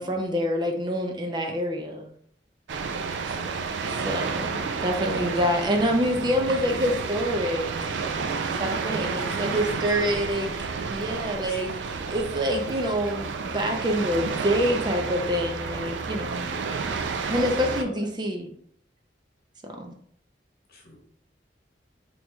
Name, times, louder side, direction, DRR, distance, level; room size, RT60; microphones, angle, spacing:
voice 1, 0.0-2.1 4.0-7.9 8.6-10.5 10.9-11.7 12.1-16.5 17.3-18.5 19.6-19.9, equal, 25° right, 3 dB, 0.5 m, -26 dB
sound 1, 2.7-17.8, right 5 dB, 85° right, 0.4 m, -31 dB
voice 2, 5.5-6.4 8.8-10.6 11.4-11.8 12.6-12.8 16.2-16.8 17.3-18.0 20.7-21.0, equal, 60° left, -1 dB, 1.1 m, -43 dB
4.3 x 2.8 x 2.3 m, 0.62 s
head